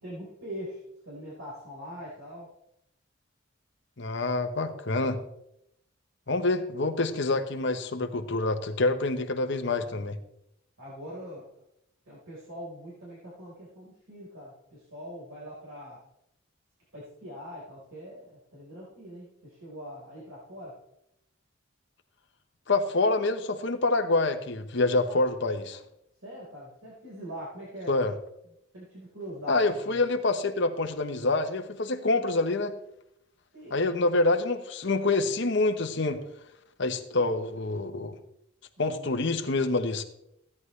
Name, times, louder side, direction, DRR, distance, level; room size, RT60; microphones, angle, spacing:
voice 1, 0.0-2.5 9.7-10.0 10.8-11.4 12.1-16.0 16.9-20.8 25.1-25.2 26.2-28.0 28.7-30.0 33.5-33.8 38.8-39.2, equal, 80° right, -7 dB, 4.3 m, -42 dB
voice 2, 4.0-5.2 6.3-10.2 22.7-25.8 27.9-28.1 29.5-32.7 33.7-36.2 36.8-38.2 38.8-40.0, left 2 dB, 60° left, 6 dB, 1.0 m, -26 dB
16.0 x 9.7 x 3.3 m, 0.79 s
head